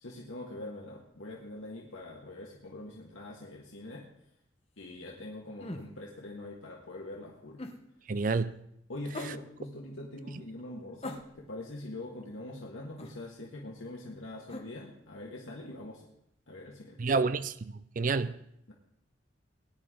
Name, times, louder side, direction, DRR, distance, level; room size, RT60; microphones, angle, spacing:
voice 1, 0.0-4.0 4.8-7.6 8.9-16.1 16.5-17.1 18.0-18.3 18.7-18.8, left 1 dB, 85° left, 1.8 m, -43 dB
sound 1, 5.6-5.9 7.6-7.8 9.1-9.4 11.0-11.6 13.0-13.2 14.5-14.7, left 1 dB, 30° left, 1.1 m, -41 dB
voice 2, 8.1-8.5 17.0-18.3, right 4 dB, 40° right, 0.5 m, -29 dB
19.0 x 9.9 x 3.8 m
head